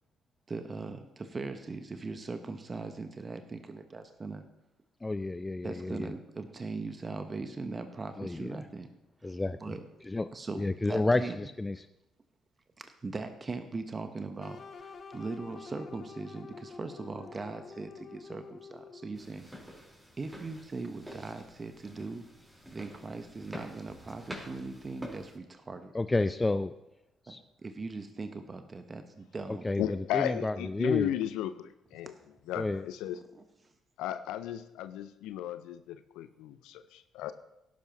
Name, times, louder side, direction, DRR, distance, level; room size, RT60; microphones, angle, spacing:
voice 1, 0.5-4.4 5.6-8.9 9.2-9.3 9.6-9.8 10.3-11.4 12.8-19.5 20.2-22.2 22.7-25.9 27.3-29.7 32.0-32.2 33.1-33.2, right 3 dB, 30° right, 8 dB, 1.0 m, -40 dB
voice 2, 5.0-6.1 8.2-8.5 9.2-9.6 10.1-10.3 10.5-11.9 25.9-26.7 27.3-27.4 29.5-31.1 32.5-32.8, left 2 dB, 20° left, 11 dB, 0.5 m, -30 dB
sound 1, 14.4-19.3, left 4 dB, 45° left, 1.3 m, -48 dB
sound 2, 19.1-25.4, equal, 10° right, 4.1 m, -48 dB
voice 3, 29.8-32.1 32.5-33.2 34.0-37.3, left 12 dB, 70° left, 12 dB, 0.5 m, -35 dB
17.5 x 10.5 x 3.0 m, 0.92 s
hypercardioid pair, 45°, 0 cm